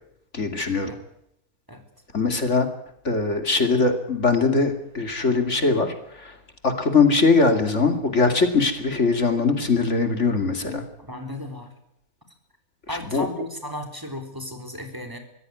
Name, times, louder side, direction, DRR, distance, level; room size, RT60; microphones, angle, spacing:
voice 1, 0.3-0.9 2.1-2.7 3.0-6.3 6.6-10.8 13.1-13.3, left 4 dB, 55° left, 6 dB, 2.9 m, -21 dB
voice 2, 11.0-11.7 12.9-15.2, left 1 dB, 15° right, 6 dB, 3.7 m, -35 dB
24.0 x 16.5 x 9.5 m, 0.79 s
omnidirectional pair, 1.5 m